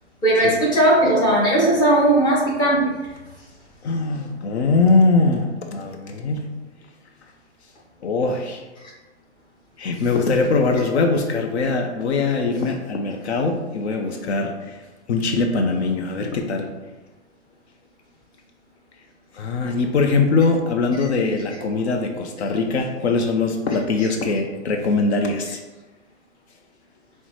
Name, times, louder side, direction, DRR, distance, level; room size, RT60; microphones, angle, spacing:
voice 1, 0.2-2.9, right 1 dB, 10° left, -6 dB, 0.9 m, -17 dB
voice 2, 3.8-6.5 8.0-8.6 9.8-14.8 15.1-16.7 19.3-25.6, left 3 dB, 65° left, 4 dB, 0.5 m, -21 dB
5.4 x 2.1 x 3.0 m, 1.2 s
hypercardioid pair, 140°, 36 cm